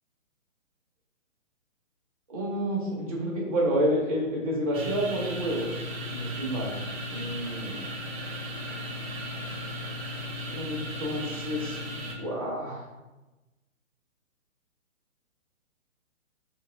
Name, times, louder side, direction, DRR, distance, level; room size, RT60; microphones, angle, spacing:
voice 1, 2.3-5.8 6.1-6.7 7.1-7.8 10.5-11.8 12.2-12.8, equal, 30° right, -3 dB, 0.4 m, -29 dB
sound 1, 4.7-12.1, equal, 75° right, 0.7 m, -36 dB
2.6 x 2.1 x 2.4 m, 1.1 s
figure-of-eight pair, 135°, 41 cm